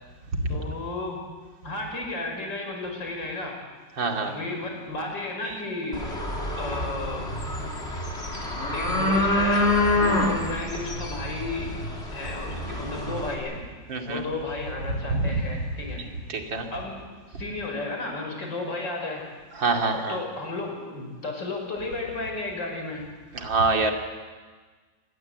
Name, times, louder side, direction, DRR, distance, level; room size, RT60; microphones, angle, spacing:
voice 1, 0.5-1.2 1.6-3.6 4.2-6.1 6.6-7.2 8.7-11.7 12.1-13.6 14.1-16.0 16.7-17.0 17.3-19.2 19.9-23.0, left 2 dB, 70° left, 2 dB, 6.2 m, -33 dB
voice 2, 4.0-4.3 13.9-14.2 14.9-15.4 16.3-16.7 19.6-20.2 23.3-23.9, right 3 dB, 75° right, 2 dB, 3.3 m, -25 dB
sound 1, 5.9-13.3, left 1 dB, 35° left, 4.1 m, -27 dB
27.0 x 20.0 x 8.0 m, 1.4 s
omnidirectional pair, 2.1 m